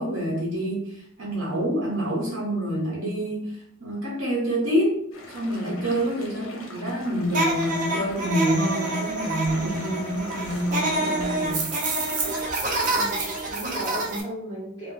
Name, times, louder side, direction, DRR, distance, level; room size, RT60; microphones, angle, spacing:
voice 1, 0.0-5.0 5.3-11.7, equal, 75° right, -5 dB, 1.0 m, -27 dB
sound 1, 5.1-12.4, left 1 dB, 70° left, 0.6 m, -42 dB
voice 2, 6.2-6.7 12.8-14.9, right 1 dB, 15° left, -11 dB, 0.6 m, -36 dB
sound 2, 7.3-14.2, right 2 dB, 40° right, 0.5 m, -27 dB
2.5 x 2.1 x 3.7 m, 0.76 s
head